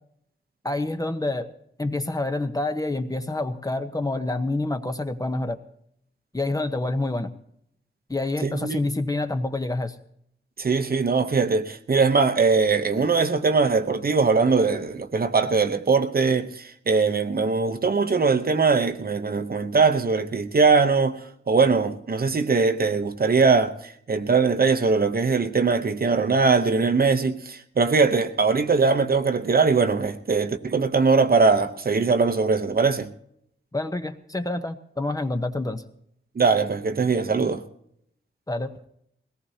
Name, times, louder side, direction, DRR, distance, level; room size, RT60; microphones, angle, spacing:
voice 1, 0.6-1.5 1.8-5.6 6.3-7.3 8.1-10.0 33.7-35.8 38.5-38.9, left 2 dB, 15° left, 0.8 m, -27 dB
voice 2, 8.4-8.8 10.6-21.2 21.5-23.7 24.1-33.1 36.4-37.6, right 4 dB, 45° right, 0.8 m, -21 dB
21.5 x 18.0 x 2.8 m
wide cardioid pair, 135°, 21 cm